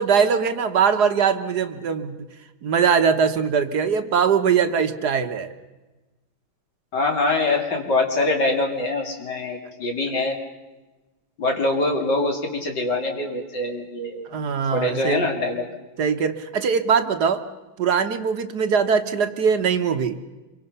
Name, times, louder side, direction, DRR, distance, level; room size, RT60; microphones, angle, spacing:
voice 1, 0.0-2.2 2.6-5.5 14.3-15.2 16.0-17.4 17.8-20.2, right 6 dB, 60° right, 8 dB, 1.4 m, -21 dB
voice 2, 6.9-10.4 11.4-14.3 14.7-15.7, left 2 dB, 55° left, 2 dB, 3.4 m, -24 dB
26.5 x 24.0 x 5.5 m, 1.1 s
omnidirectional pair, 2.2 m